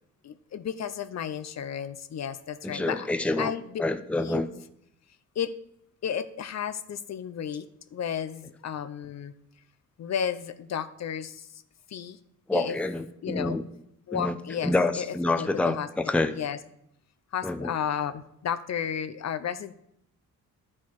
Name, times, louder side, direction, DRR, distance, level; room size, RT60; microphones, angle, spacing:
voice 1, 0.2-3.1 3.4-3.8 4.2-4.6 5.4-5.6 6.0-9.3 10.0-11.6 11.9-12.2 12.5-12.8 13.2-13.6 14.1-15.9 16.2-16.6 17.3-19.7, left 8 dB, 55° left, 11 dB, 0.6 m, -33 dB
voice 2, 2.6-3.5 3.8-4.5 12.5-13.6 14.1-14.4 14.6-16.3 17.4-17.7, left 2 dB, 5° left, 8 dB, 0.6 m, -27 dB
10.5 x 4.4 x 4.7 m, 0.76 s
cardioid pair, 70°, 33 cm